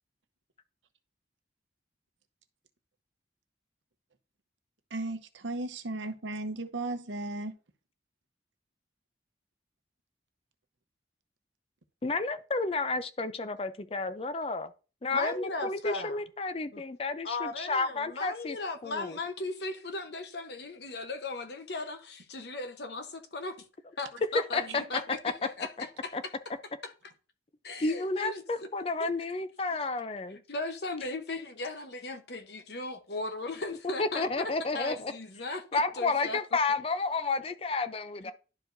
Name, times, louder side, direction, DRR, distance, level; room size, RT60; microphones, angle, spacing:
voice 1, 4.9-7.5, right 2 dB, 80° right, 0.8 m, -35 dB
voice 2, 12.0-14.7 15.0-18.6 18.8-19.2 24.3-24.8 25.2-25.3 26.1-26.2 27.8-30.4 34.0-35.1 35.7-38.3, left 3 dB, 30° left, 0.5 m, -31 dB
voice 3, 15.1-16.2 16.7-16.8 17.2-23.7 24.0-26.1 26.8-26.9 27.6-28.7 29.0-29.1 30.3-36.4, left 3 dB, 60° left, 0.9 m, -37 dB
11.5 x 4.7 x 2.6 m
head